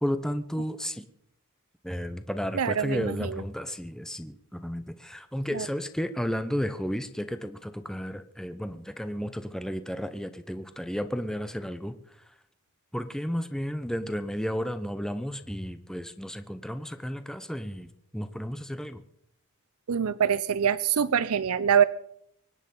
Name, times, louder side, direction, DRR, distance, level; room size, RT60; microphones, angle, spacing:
voice 1, 0.0-1.0 1.8-11.9 12.9-19.0, equal, 5° left, 10 dB, 0.8 m, -33 dB
voice 2, 2.5-3.3 5.5-5.7 19.9-21.8, right 8 dB, 85° right, 16 dB, 0.5 m, -24 dB
24.0 x 10.0 x 5.4 m, 0.71 s
head